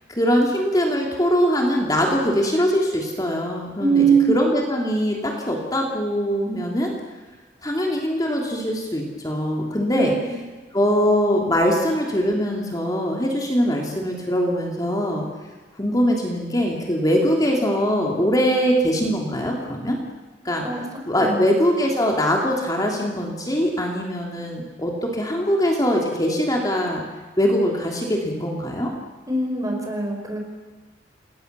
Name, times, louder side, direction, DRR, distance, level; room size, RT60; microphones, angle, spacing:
voice 1, 0.1-6.9 7.6-10.1 10.7-15.2 15.8-20.0 20.4-20.6 21.1-27.0 27.4-28.9, equal, 20° left, -1 dB, 3.2 m, -22 dB
voice 2, 3.8-4.5 9.9-10.4 20.6-20.9 21.2-21.4 29.3-30.4, right 4 dB, 20° right, 2 dB, 5.6 m, -22 dB
28.5 x 20.5 x 7.0 m, 1.3 s
head